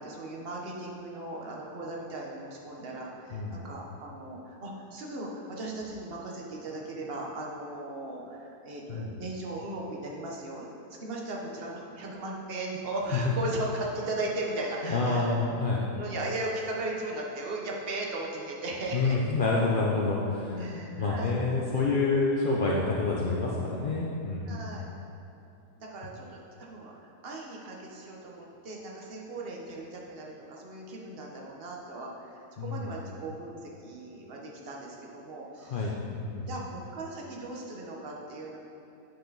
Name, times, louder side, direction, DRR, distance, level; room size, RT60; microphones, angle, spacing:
voice 1, 0.0-10.7 11.0-15.4 15.9-19.2 20.6-21.3 24.4-24.8 25.8-36.0 36.5-38.6, right 2 dB, 40° right, -2 dB, 1.1 m, -37 dB
voice 2, 3.3-3.6 8.9-9.1 13.1-13.3 14.9-15.9 18.9-24.7 32.6-32.9 35.7-36.5, left 3 dB, 55° left, -4 dB, 0.5 m, -28 dB
8.8 x 6.6 x 4.0 m, 2.7 s
omnidirectional pair, 1.8 m